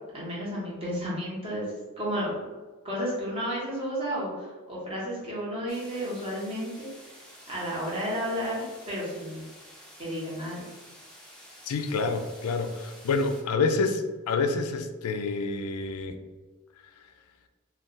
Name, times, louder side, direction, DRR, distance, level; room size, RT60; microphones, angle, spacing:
voice 1, 0.1-1.7 2.0-2.3 2.8-6.9 7.5-9.4 10.0-10.7, equal, 25° right, -6 dB, 1.0 m, -32 dB
sound 1, 5.7-13.4, equal, ahead, 0.5 m, -50 dB
voice 2, 11.6-16.2, left 4 dB, 80° left, 7 dB, 0.4 m, -28 dB
2.4 x 2.3 x 3.8 m, 1.3 s
head